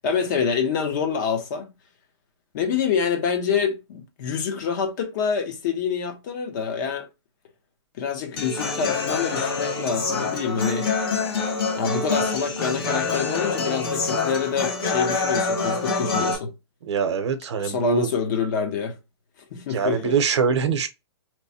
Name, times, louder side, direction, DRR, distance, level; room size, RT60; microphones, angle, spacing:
voice 1, 0.0-1.7 2.5-7.1 8.0-10.9 11.8-16.5 17.6-19.0 19.5-20.2, left 6 dB, 40° left, 0.8 m, -26 dB
Human voice / Acoustic guitar, 8.4-16.3, left 4 dB, 55° left, 1.2 m, -26 dB
voice 2, 16.8-18.1 19.7-20.9, right 6 dB, 75° right, 0.7 m, -23 dB
3.0 x 2.1 x 4.1 m
hypercardioid pair, 165°, 15 cm